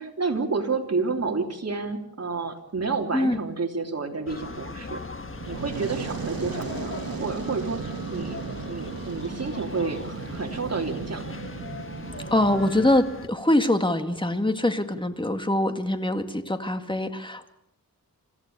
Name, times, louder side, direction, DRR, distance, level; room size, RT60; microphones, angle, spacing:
voice 1, 0.0-5.0 5.5-8.4 8.7-11.3, right 4 dB, 45° right, 3 dB, 3.4 m, -30 dB
sound 1, 4.3-13.3, left 4 dB, 35° left, 1.5 m, -39 dB
Fire, 5.2-12.9, right 6 dB, 80° right, 1.6 m, -36 dB
voice 2, 12.3-17.5, left 1 dB, 15° left, 7 dB, 2.1 m, -24 dB
26.5 x 15.0 x 6.9 m, 0.78 s
cardioid pair, 65°, 35 cm